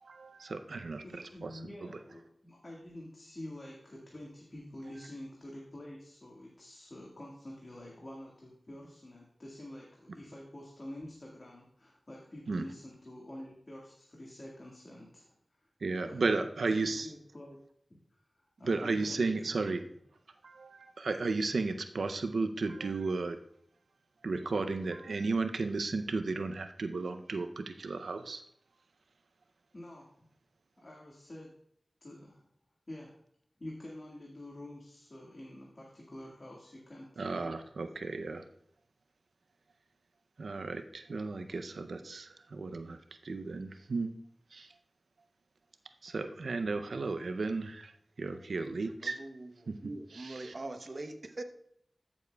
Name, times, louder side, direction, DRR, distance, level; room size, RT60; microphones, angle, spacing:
voice 1, 0.0-1.5 1.8-1.9 12.5-12.6 15.8-17.1 18.6-19.8 20.4-23.4 24.2-28.4 37.2-38.4 40.4-44.1 44.5-44.7 46.0-47.9 48.2-49.2 49.7-49.8 50.1-50.5, right 3 dB, 85° right, 8 dB, 0.5 m, -34 dB
voice 2, 0.8-15.4 16.0-16.4 16.8-17.6 17.9-19.2 19.5-19.6 29.7-30.1 30.8-31.5 32.0-32.5 32.9-33.2 33.6-37.5, left 1 dB, 50° left, -3 dB, 1.8 m, -48 dB
voice 3, 49.0-49.5 49.8-51.4, right 2 dB, 55° right, 7 dB, 0.9 m, -42 dB
13.0 x 7.1 x 2.3 m, 0.68 s
cardioid pair, 40°, 0 cm